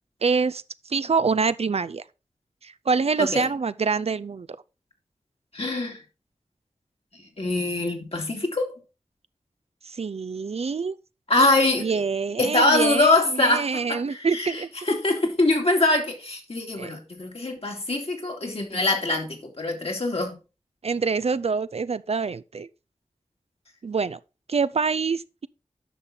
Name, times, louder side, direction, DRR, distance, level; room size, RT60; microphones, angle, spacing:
voice 1, 0.2-2.1 2.6-4.5 9.8-11.0 11.8-14.7 16.8-16.9 20.8-22.7 23.8-24.2 24.5-25.5, right 5 dB, 60° right, 0.5 m, -26 dB
voice 2, 5.5-6.0 7.4-8.8 11.3-11.9 12.4-14.6 14.9-20.3, left 2 dB, 55° left, 2.6 m, -23 dB
10.0 x 5.9 x 3.9 m
cardioid pair, 40°, 12 cm